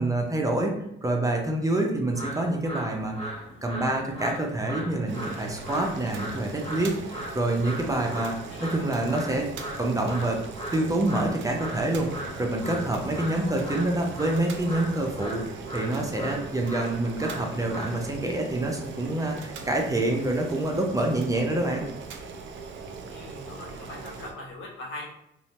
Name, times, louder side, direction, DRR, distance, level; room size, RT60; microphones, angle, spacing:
voice 1, 0.0-3.2 3.6-9.5 9.8-10.4 10.7-12.1 12.4-15.4 15.7-21.8, right 2 dB, 15° right, 1 dB, 0.5 m, -27 dB
sound 1, 2.1-20.3, equal, 30° left, 0.8 m, -39 dB
Boiling, 5.1-24.3, right 4 dB, 70° right, 0.4 m, -40 dB
voice 2, 13.4-13.9 23.1-25.1, left 1 dB, 80° left, -1 dB, 0.9 m, -41 dB
2.6 x 2.1 x 2.9 m, 0.80 s
cardioid pair, 90°, 20 cm